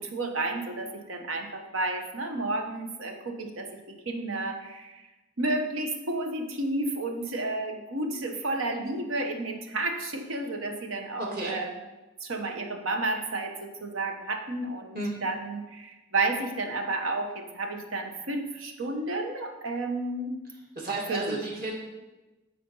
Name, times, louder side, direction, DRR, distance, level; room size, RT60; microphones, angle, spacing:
voice 1, 0.0-3.7 4.0-5.0 5.4-11.7 12.2-20.4 21.1-21.4, right 2 dB, 90° right, 4 dB, 1.2 m, -31 dB
voice 2, 11.2-11.6 14.9-15.1 20.8-21.7, right 2 dB, 45° right, -3 dB, 2.3 m, -32 dB
12.0 x 4.3 x 5.5 m, 1.1 s
head